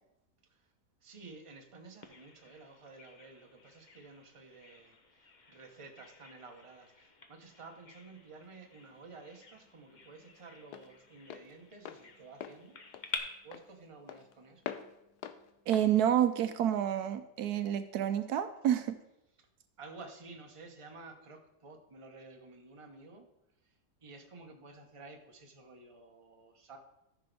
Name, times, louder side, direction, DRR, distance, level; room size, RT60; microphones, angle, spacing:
voice 1, 1.0-12.8 13.4-14.7 19.8-23.3 24.0-26.8, right 3 dB, 25° right, 3 dB, 1.0 m, -52 dB
Bird vocalization bird call bird song, 2.0-13.2, left 5 dB, 40° left, 0.7 m, -50 dB
Walk footsteps, 8.4-17.1, left 10 dB, 85° left, 1.2 m, -48 dB
voice 2, 15.7-19.0, right 10 dB, 75° right, 10 dB, 1.1 m, -29 dB
14.0 x 6.0 x 3.4 m, 0.90 s
omnidirectional pair, 1.7 m